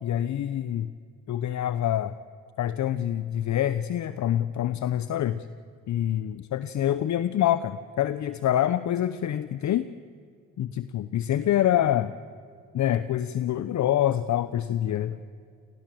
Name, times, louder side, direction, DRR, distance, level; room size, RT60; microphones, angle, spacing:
voice 1, 0.0-0.9 1.3-2.1 2.6-5.5 5.9-9.8 10.6-12.1 12.7-15.2, left 11 dB, 55° left, 14 dB, 0.9 m, -26 dB
27.5 x 18.5 x 7.8 m, 2.2 s
cardioid pair, 90°, 35 cm